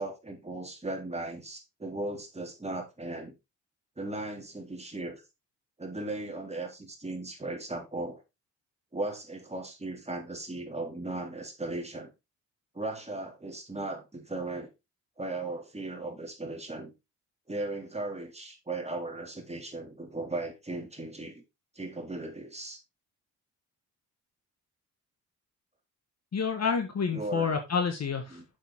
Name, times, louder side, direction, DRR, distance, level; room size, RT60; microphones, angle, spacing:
voice 1, 0.0-3.3 4.0-5.2 5.8-8.2 8.9-12.1 12.7-14.7 15.2-16.9 17.5-21.4 21.8-22.8 27.1-27.6 28.3-28.5, right 2 dB, 15° right, 3.5 m, -37 dB
voice 2, 26.3-28.3, left 6 dB, 45° left, 1.6 m, -28 dB
7.3 x 7.2 x 3.7 m
hypercardioid pair, 55°, 37 cm